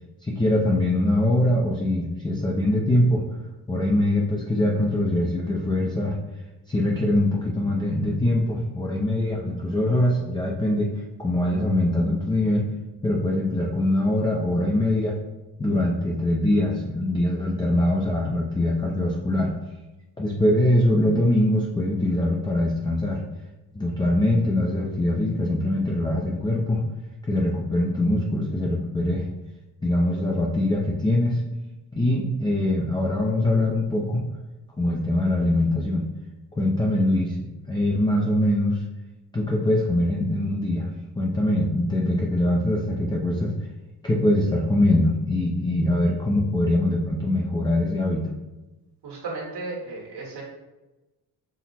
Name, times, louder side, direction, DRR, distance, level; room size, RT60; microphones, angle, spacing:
voice 1, 0.2-3.2 3.7-6.2 6.7-10.9 11.2-12.7 13.0-15.1 15.6-19.5 20.2-23.2 23.7-26.8 27.3-29.3 29.8-31.4 31.9-34.2 34.8-36.0 36.5-37.4 37.7-38.8 39.3-40.9 41.2-43.5 44.0-48.2, left 1 dB, 10° left, -2 dB, 0.4 m, -23 dB
voice 2, 49.0-50.4, right 3 dB, 85° right, -3 dB, 1.5 m, -34 dB
5.9 x 2.0 x 4.2 m, 1.1 s
wide cardioid pair, 140°, 39 cm